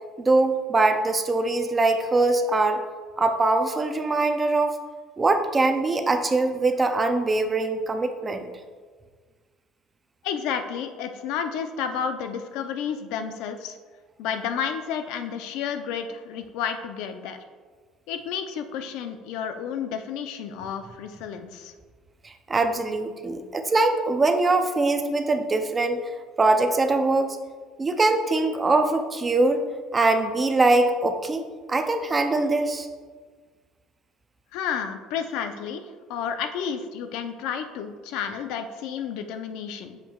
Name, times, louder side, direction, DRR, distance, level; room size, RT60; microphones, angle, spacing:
voice 1, 0.2-2.8 3.2-4.8 5.2-8.5 22.2-27.4 27.8-29.6 29.9-32.9, right 2 dB, 15° right, 7 dB, 0.4 m, -22 dB
voice 2, 10.2-13.8 14.2-17.4 18.1-21.7 34.5-35.8 36.1-40.0, left 7 dB, 70° left, 7 dB, 0.5 m, -31 dB
7.9 x 6.6 x 2.3 m, 1.5 s
cardioid pair, 160°, 0 cm